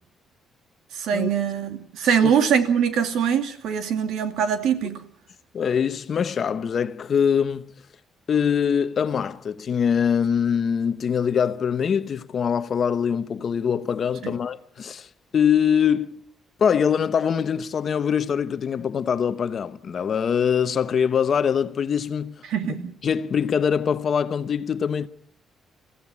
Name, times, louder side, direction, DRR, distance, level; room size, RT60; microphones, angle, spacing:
voice 1, 0.9-5.0 14.2-14.3 22.5-22.9, right 8 dB, 85° right, 2.4 m, -23 dB
voice 2, 5.5-7.7 8.3-15.1 15.3-16.2 16.6-22.4 23.0-25.1, left 7 dB, 40° left, 0.9 m, -23 dB
23.5 x 15.5 x 9.6 m
cardioid pair, 165°, 0 cm